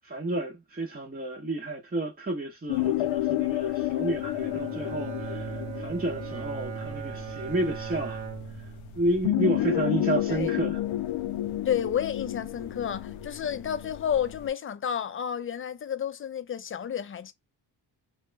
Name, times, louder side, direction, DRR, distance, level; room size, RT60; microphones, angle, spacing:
voice 1, 0.0-8.2 8.9-10.8, right 2 dB, 20° right, 0.7 m, -31 dB
sound 1, 2.7-14.5, left 14 dB, 90° left, 0.6 m, -31 dB
Bowed string instrument, 4.1-9.4, right 7 dB, 80° right, 1.0 m, -38 dB
voice 2, 11.7-17.3, left 8 dB, 30° left, 0.4 m, -31 dB
2.9 x 2.2 x 3.2 m
cardioid pair, 75°, 45 cm